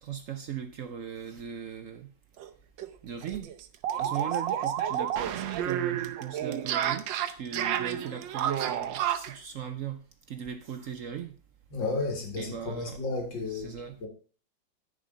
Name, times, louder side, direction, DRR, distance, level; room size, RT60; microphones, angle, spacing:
voice 1, 0.0-2.1 3.0-3.5 4.0-10.0 10.3-11.3 12.4-13.0 13.5-14.1, right 8 dB, 60° right, 0.8 m, -38 dB
sound 1, 2.4-2.5 2.8-2.9 3.2-9.4, right 10 dB, 85° right, 1.4 m, -30 dB
voice 2, 11.7-14.1, left 3 dB, 90° left, 2.7 m, -33 dB
10.5 x 5.3 x 5.1 m
omnidirectional pair, 2.0 m